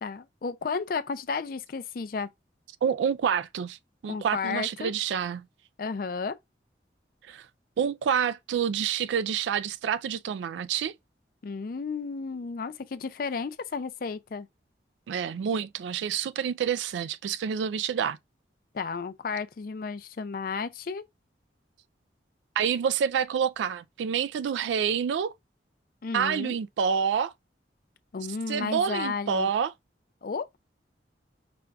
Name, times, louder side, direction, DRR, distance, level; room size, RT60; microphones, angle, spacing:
voice 1, 0.0-2.3 4.1-4.9 5.8-6.3 11.4-14.5 18.7-21.0 26.0-26.6 28.1-29.5 30.2-30.5, left 5 dB, 50° left, 0.4 m, -33 dB
voice 2, 2.8-3.8 4.0-5.4 7.3-7.5 7.8-10.9 15.1-18.2 22.6-25.3 26.1-27.3 28.5-29.7, right 7 dB, 85° right, 0.3 m, -28 dB
5.1 x 2.3 x 3.4 m
head